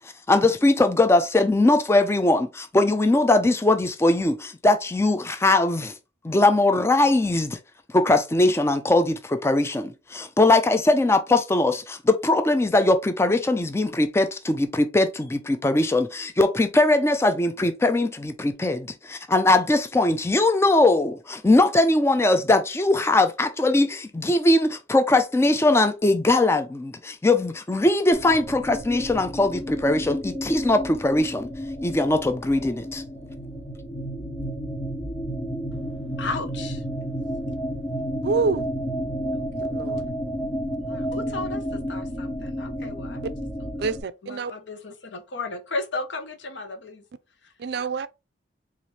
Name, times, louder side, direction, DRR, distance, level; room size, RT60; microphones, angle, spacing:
voice 1, 0.3-5.9 6.2-7.6 7.9-31.5 31.8-33.0, left 2 dB, 15° left, 0.4 m, -21 dB
sound 1, 28.1-44.0, equal, 30° left, 0.8 m, -31 dB
voice 2, 35.7-36.8 37.5-37.6 40.8-43.3 43.8-43.9 44.2-47.0 47.4-47.5, left 3 dB, 80° left, 0.8 m, -35 dB
voice 3, 38.2-38.7 39.6-40.1 43.2-43.3 43.8-44.5 47.6-48.1, right 4 dB, 60° right, 0.4 m, -27 dB
4.2 x 2.5 x 3.1 m
head